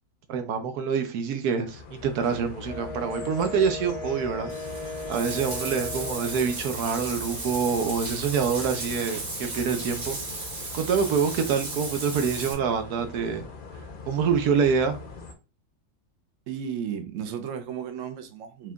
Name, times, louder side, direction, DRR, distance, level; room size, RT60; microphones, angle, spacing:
voice 1, 0.3-4.5 5.1-10.2 10.7-13.5 14.1-15.0, right 6 dB, 85° right, 1.2 m, -26 dB
sound 1, 1.6-15.3, left 4 dB, 50° left, 0.7 m, -42 dB
Wind instrument woodwind instrument, 2.6-6.7, left 1 dB, 10° right, 0.7 m, -37 dB
Bathtub (filling or washing), 4.5-12.5, right 3 dB, 50° right, 1.4 m, -35 dB
voice 2, 16.5-18.7, right 8 dB, 65° right, 1.0 m, -34 dB
4.7 x 2.4 x 3.5 m
omnidirectional pair, 1.6 m